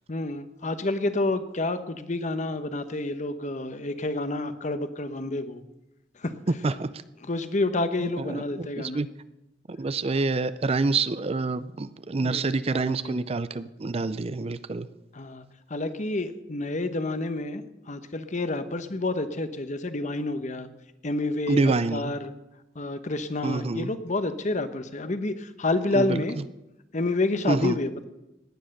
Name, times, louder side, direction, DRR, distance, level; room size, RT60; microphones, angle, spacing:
voice 1, 0.1-5.6 6.2-6.3 7.2-9.0 10.1-10.2 12.2-12.4 12.7-13.2 15.1-15.4 15.7-17.6 17.9-20.7 21.0-22.3 22.7-26.4 26.9-28.0, left 2 dB, 40° left, 11 dB, 1.0 m, -29 dB
voice 2, 6.5-6.9 8.0-9.1 9.7-14.9 21.5-22.1 23.4-23.9 25.9-26.2 27.5-27.8, right 3 dB, 35° right, 15 dB, 0.5 m, -27 dB
17.0 x 10.0 x 6.6 m, 0.96 s
head